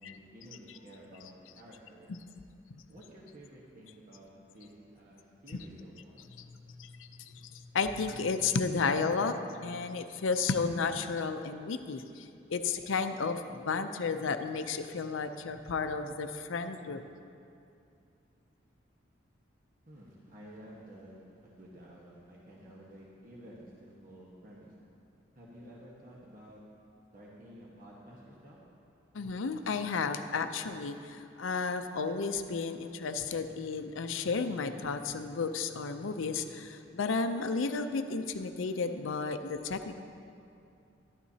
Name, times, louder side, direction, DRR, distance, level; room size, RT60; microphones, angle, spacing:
voice 1, 0.0-2.1 2.9-6.2 19.9-24.7 25.3-26.6 27.1-28.6, equal, 45° right, -5 dB, 1.2 m, -52 dB
voice 2, 6.4-17.0 29.1-40.0, left 4 dB, 85° left, 9 dB, 0.5 m, -33 dB
12.0 x 11.5 x 2.8 m, 2.6 s
head